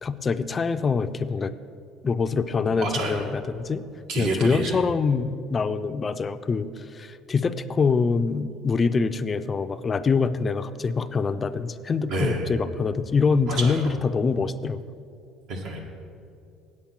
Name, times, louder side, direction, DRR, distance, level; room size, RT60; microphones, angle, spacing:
voice 1, 0.0-1.5 2.0-3.8 4.2-14.8, left 5 dB, 25° left, 11 dB, 0.4 m, -25 dB
voice 2, 2.7-3.3 4.1-4.8 12.1-12.6 13.4-13.9 15.5-15.8, right 2 dB, 70° right, 1 dB, 1.6 m, -29 dB
8.6 x 8.3 x 5.8 m, 2.4 s
cardioid pair, 130°, 0 cm